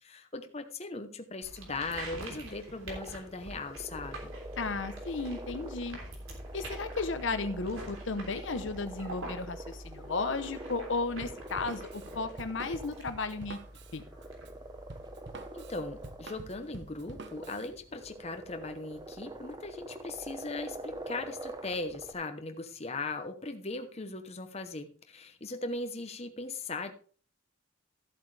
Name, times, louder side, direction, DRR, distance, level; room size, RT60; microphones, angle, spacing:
voice 1, 0.0-4.3 15.5-26.9, left 3 dB, 30° left, 7 dB, 0.9 m, -39 dB
sound 1, 1.4-16.0, right 1 dB, 80° right, 3.3 m, -46 dB
sound 2, 2.9-22.1, right 1 dB, 20° right, 1.0 m, -46 dB
voice 2, 4.6-6.0 6.5-13.6 13.9-14.0, left 3 dB, 65° left, 10 dB, 0.8 m, -34 dB
Drum kit, 11.2-17.7, right 2 dB, 60° right, 1.0 m, -47 dB
14.0 x 8.0 x 3.3 m, 0.43 s
head